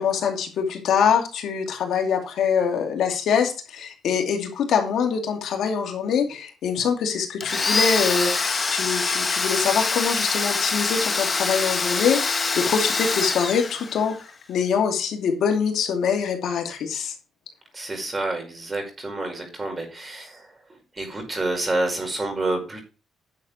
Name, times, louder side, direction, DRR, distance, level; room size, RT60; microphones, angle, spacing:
voice 1, 0.0-14.1 14.5-17.1, left 6 dB, 75° left, 4 dB, 2.5 m, -24 dB
Domestic sounds home sounds, 7.4-14.2, left 4 dB, 30° left, 1.3 m, -25 dB
voice 2, 17.7-22.8, right 2 dB, 25° right, 3 dB, 5.4 m, -29 dB
10.5 x 6.6 x 4.4 m, 0.33 s
cardioid pair, 90°, 0 cm